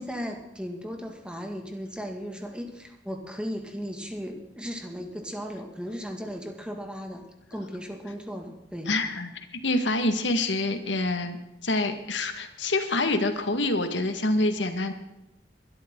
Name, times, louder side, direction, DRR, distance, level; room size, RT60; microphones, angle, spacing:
voice 1, 0.0-7.2 7.5-8.9, equal, 5° right, 3 dB, 2.1 m, -36 dB
voice 2, 8.9-9.3 9.6-11.4 11.6-14.9, left 2 dB, 90° left, 7 dB, 1.9 m, -26 dB
22.0 x 13.0 x 3.9 m, 0.92 s
head